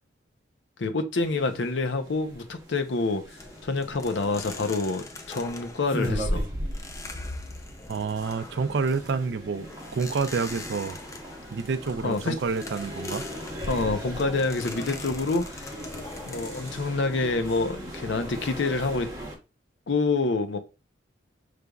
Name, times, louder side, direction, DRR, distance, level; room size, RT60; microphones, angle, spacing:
voice 1, 0.8-6.4 12.0-12.3 13.7-15.7 16.3-19.1 19.9-20.6, left 3 dB, 70° left, 0.6 m, -27 dB
sound 1, 1.2-19.4, equal, 20° right, 0.9 m, -38 dB
sound 2, 3.4-18.4, left 2 dB, 15° left, 0.4 m, -42 dB
voice 2, 7.9-11.0 11.5-13.3, right 4 dB, 65° right, 0.4 m, -28 dB
5.1 x 3.3 x 2.3 m
head